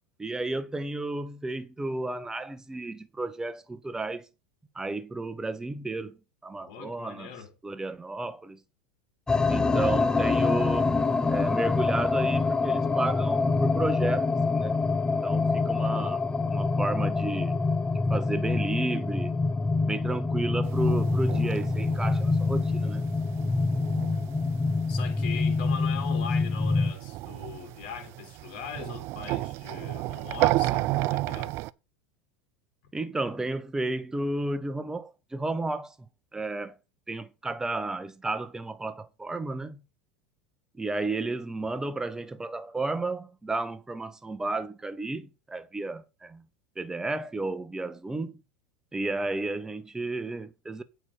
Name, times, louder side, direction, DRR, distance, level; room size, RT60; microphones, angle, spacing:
voice 1, 0.2-4.3 4.7-7.3 7.6-8.6 9.5-10.9 11.3-14.8 15.2-16.2 16.5-17.6 18.1-19.4 19.9-23.0 32.9-36.0 36.3-36.8 37.1-39.8 40.7-46.4 46.8-48.4 48.9-50.8, right 2 dB, 10° right, 1.0 m, -32 dB
voice 2, 6.7-7.5 15.7-16.2 24.9-31.5 41.6-41.7, left 7 dB, 65° left, 3.6 m, -40 dB
sound 1, 9.3-26.9, left 3 dB, 15° left, 0.6 m, -26 dB
sound 2, 20.6-25.2 25.4-31.7, right 18 dB, 50° right, 0.5 m, -32 dB
8.6 x 4.5 x 6.6 m
hypercardioid pair, 105°, 6 cm